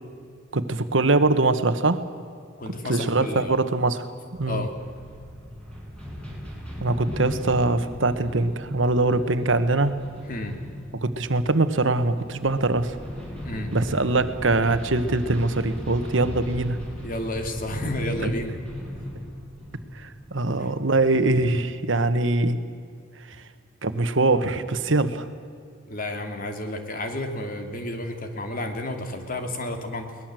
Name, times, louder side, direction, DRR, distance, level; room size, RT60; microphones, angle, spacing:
voice 1, 0.5-2.0 2.8-4.1 4.4-4.6 6.8-10.0 10.9-12.9 13.7-16.8 18.2-18.3 19.9-22.6 23.8-25.3, right 2 dB, 70° right, 11 dB, 1.3 m, -23 dB
voice 2, 2.6-3.6 4.5-4.7 10.3-10.6 13.4-13.7 17.0-18.6 25.9-30.1, left 1 dB, 45° left, 5 dB, 2.7 m, -31 dB
sound 1, 4.3-21.8, equal, 5° left, 6.8 m, -37 dB
22.5 x 19.5 x 7.7 m, 2.3 s
head